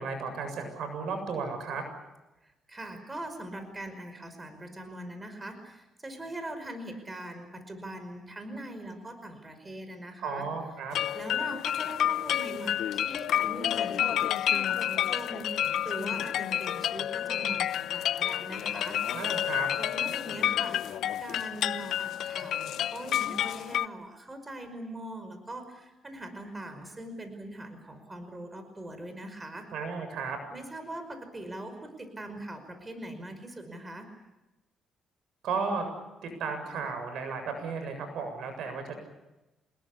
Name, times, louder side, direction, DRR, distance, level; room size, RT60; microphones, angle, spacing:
voice 1, 0.0-1.8 10.2-10.9 19.1-19.7 29.7-30.4 35.4-35.9 36.4-39.0, right 5 dB, 75° right, 7 dB, 7.5 m, -34 dB
voice 2, 2.4-10.5 11.1-19.0 19.8-20.8 21.2-29.7 30.5-34.1, right 1 dB, 20° right, 7 dB, 5.3 m, -41 dB
sound 1, 10.9-23.9, left 11 dB, 75° left, 0.8 m, -29 dB
27.5 x 21.0 x 8.5 m, 1.0 s
cardioid pair, 90°, 0 cm